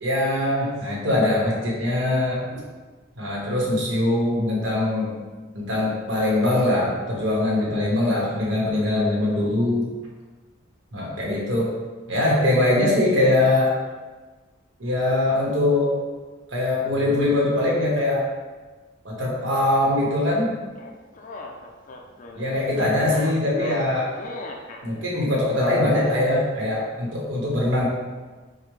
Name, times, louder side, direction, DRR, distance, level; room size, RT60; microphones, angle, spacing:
voice 1, 0.0-2.6 3.2-5.1 5.5-9.9 10.9-11.7 12.1-13.7 14.8-15.9 16.5-18.2 19.0-20.5 22.4-24.1 24.8-27.9, left 1 dB, 85° right, -4 dB, 1.1 m, -22 dB
sound 1, 20.8-24.8, left 2 dB, 45° left, 0.4 m, -38 dB
4.9 x 2.1 x 3.1 m, 1.3 s
head